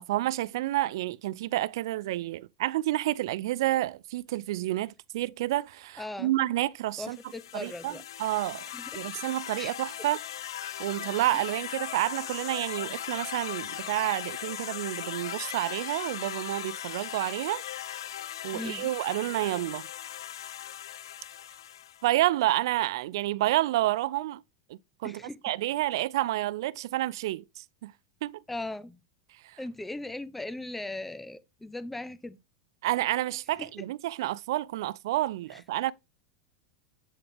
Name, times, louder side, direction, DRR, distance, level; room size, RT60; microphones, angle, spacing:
voice 1, 0.0-7.2 7.5-8.7 8.9-10.2 10.8-17.6 18.4-19.9 22.0-24.4 24.7-27.9 28.2-28.4 29.4-29.6 32.8-35.9, right 15 dB, 70° right, 0.3 m, -29 dB
voice 2, 6.0-6.3 7.0-8.0 8.7-9.0 9.6-9.7 18.5-18.9 25.0-25.4 28.5-29.0 29.6-32.4 33.6-33.7 35.5-35.6, left 2 dB, 5° left, 0.7 m, -38 dB
sound 1, 7.0-22.1, left 11 dB, 85° left, 0.4 m, -39 dB
8.5 x 3.9 x 3.3 m
supercardioid pair, 135°, 2 cm